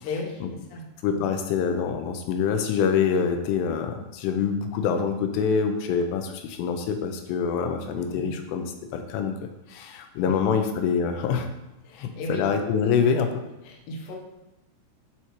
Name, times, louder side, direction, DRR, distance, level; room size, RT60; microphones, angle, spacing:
voice 1, 0.0-1.2 8.1-8.4 10.2-10.6 11.8-12.5 13.6-14.1, left 2 dB, 70° left, -1 dB, 2.4 m, -36 dB
voice 2, 1.0-8.7 8.9-9.4 9.7-11.5 12.0-13.4, left 6 dB, 90° left, 5 dB, 2.8 m, -25 dB
8.2 x 4.6 x 3.0 m, 0.94 s
omnidirectional pair, 4.8 m